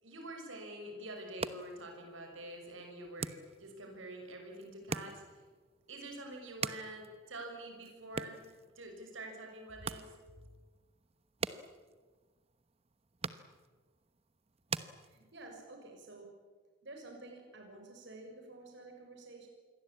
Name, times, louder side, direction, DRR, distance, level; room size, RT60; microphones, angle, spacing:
voice 1, 0.0-5.2 5.9-8.4 8.7-10.1 10.4-10.5, right 1 dB, 75° right, 3 dB, 6.4 m, -46 dB
sound 1, 1.1-15.6, right 4 dB, 30° right, 1.0 m, -45 dB
voice 2, 15.1-16.3 16.8-19.5, right 2 dB, 60° right, 2 dB, 6.1 m, -51 dB
27.5 x 22.5 x 8.6 m, 1.4 s
head